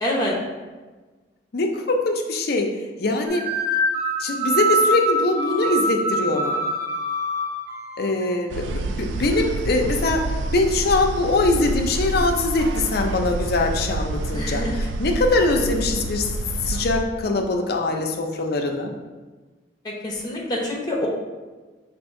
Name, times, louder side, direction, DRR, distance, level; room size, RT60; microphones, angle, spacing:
voice 1, 0.0-0.3 14.3-14.7 19.8-21.1, left 1 dB, 20° left, -2 dB, 0.8 m, -26 dB
voice 2, 1.5-2.7 3.0-3.5 4.2-6.6 8.0-10.3 10.5-16.3 16.6-18.9, left 2 dB, 60° left, 3 dB, 0.5 m, -22 dB
sound 1, 3.3-8.3, right 1 dB, 60° right, 1.2 m, -24 dB
sound 2, 8.5-17.0, right 2 dB, 80° right, 0.3 m, -28 dB
5.1 x 2.6 x 3.6 m, 1.3 s
head